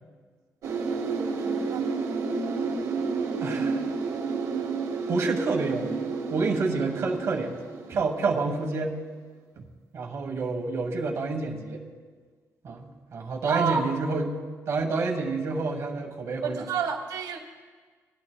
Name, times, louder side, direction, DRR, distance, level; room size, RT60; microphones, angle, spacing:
sound 1, 0.6-8.6 8.9-9.0, right 4 dB, 65° right, 1.3 m, -30 dB
voice 1, 1.1-1.9 8.2-8.3 13.5-13.9 16.4-17.4, right 6 dB, 85° right, 3 dB, 1.3 m, -30 dB
voice 2, 3.4-3.8 5.1-7.5 7.9-8.9 9.6-9.7 9.9-11.8 12.6-14.3 14.7-16.6, right 3 dB, 50° right, 1 dB, 1.2 m, -28 dB
20.0 x 11.0 x 2.3 m, 1.5 s
cardioid pair, 145°, 6 cm